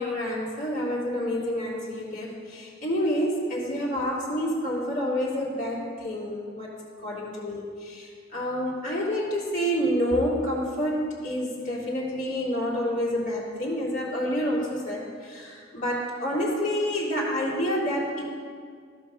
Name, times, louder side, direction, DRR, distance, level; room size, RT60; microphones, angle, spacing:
voice 1, 0.0-6.7 7.0-18.3, equal, 40° left, -6 dB, 3.1 m, -28 dB
14.0 x 5.7 x 5.6 m, 2.1 s
head